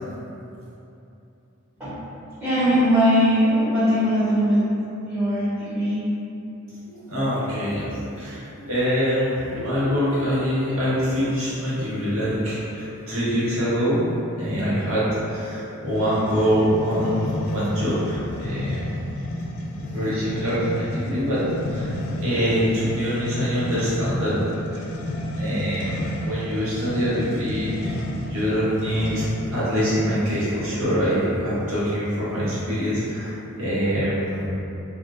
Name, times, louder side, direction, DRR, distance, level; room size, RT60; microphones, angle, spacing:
voice 1, 2.4-4.7 5.1-6.0, equal, 10° right, -19 dB, 1.1 m, -20 dB
voice 2, 6.8-14.1 14.4-19.2 19.8-21.9 22.2-24.3 24.7-24.9 25.3-29.2 29.5-33.3 33.6-34.5, equal, 70° right, -10 dB, 1.1 m, -24 dB
sound 1, 15.9-29.6, left 1 dB, 75° left, 0.3 m, -32 dB
3.5 x 2.4 x 2.6 m, 2.9 s
head